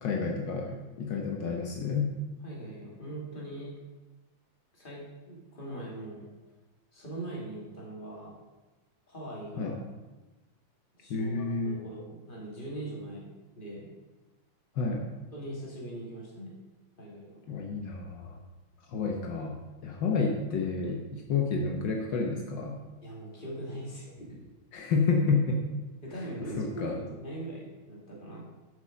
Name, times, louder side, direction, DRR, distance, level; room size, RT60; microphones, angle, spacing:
voice 1, 0.0-0.7 1.0-2.1 9.6-9.8 11.1-11.8 14.8-15.0 17.5-18.4 18.9-19.6 19.8-22.8 24.7-25.6 26.4-26.9, left 4 dB, 75° left, 1 dB, 1.0 m, -29 dB
voice 2, 2.4-3.7 4.7-6.3 6.9-8.3 9.1-9.8 11.0-13.9 15.3-16.6 17.0-17.4 20.0-20.1 23.0-24.4 26.0-28.4, right 1 dB, 15° left, -4 dB, 2.5 m, -41 dB
11.5 x 6.4 x 5.2 m, 1.1 s
omnidirectional pair, 3.4 m